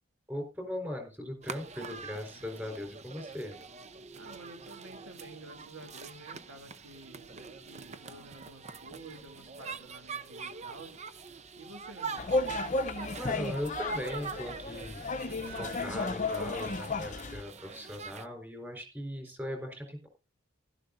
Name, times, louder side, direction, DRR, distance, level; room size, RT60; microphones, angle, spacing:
voice 1, 0.3-3.5 13.1-15.0 15.4-20.1, left 1 dB, 10° right, 3 dB, 4.3 m, -39 dB
sound 1, 1.4-18.3, right 4 dB, 35° right, 0.7 m, -43 dB
voice 2, 4.1-11.0 11.6-12.3, right 2 dB, 65° right, 4 dB, 2.8 m, -50 dB
sound 2, 12.2-17.4, left 3 dB, 35° left, 0.7 m, -33 dB
16.0 x 12.5 x 2.6 m, 0.32 s
head